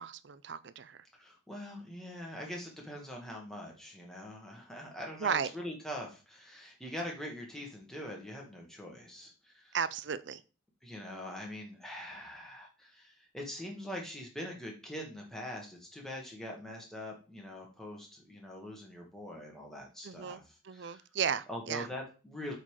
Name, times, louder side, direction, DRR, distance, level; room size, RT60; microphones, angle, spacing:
voice 1, 0.0-1.0 5.2-5.5 9.7-10.4 20.0-21.9, right 7 dB, 60° right, 0.5 m, -35 dB
voice 2, 1.1-9.8 10.8-21.0 21.5-22.6, left 1 dB, ahead, 1.6 m, -43 dB
8.0 x 4.0 x 4.8 m
head